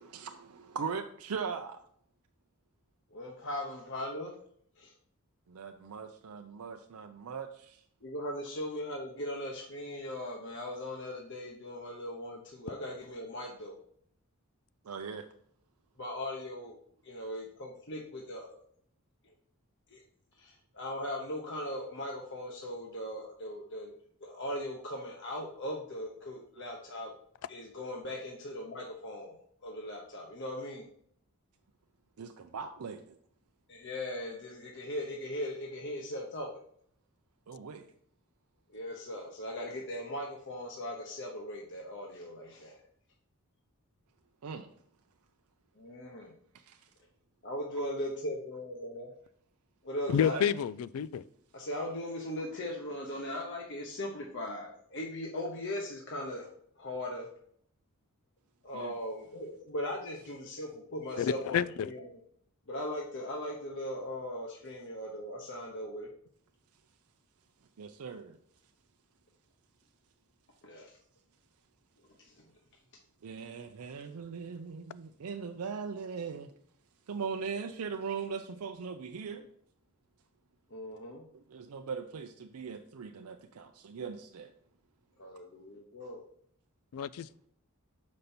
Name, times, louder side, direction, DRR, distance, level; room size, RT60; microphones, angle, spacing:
voice 1, 0.0-1.8 5.5-7.8 14.8-15.3 32.2-33.2 37.5-37.9 44.4-44.7 46.5-46.8 50.1-50.4 58.7-58.9 67.8-68.4 73.2-76.5 77.1-79.5 81.3-84.5, right 5 dB, 80° right, 0.5 m, -40 dB
voice 2, 3.1-4.3 4.8-4.9 8.0-13.8 16.0-16.8 17.0-18.6 19.9-20.0 20.4-23.9 24.2-27.1 27.5-29.4 29.6-30.9 33.7-36.5 38.7-42.8 45.8-46.3 47.4-49.1 49.8-50.4 51.5-56.5 56.8-57.3 58.6-62.2 62.7-66.1 70.6-71.0 72.2-72.5 80.7-81.2 85.2-86.2, left 1 dB, 55° left, 0.9 m, -39 dB
voice 3, 50.1-51.2 61.2-61.9 86.9-87.3, left 8 dB, 70° left, 0.3 m, -29 dB
6.7 x 5.3 x 4.3 m
head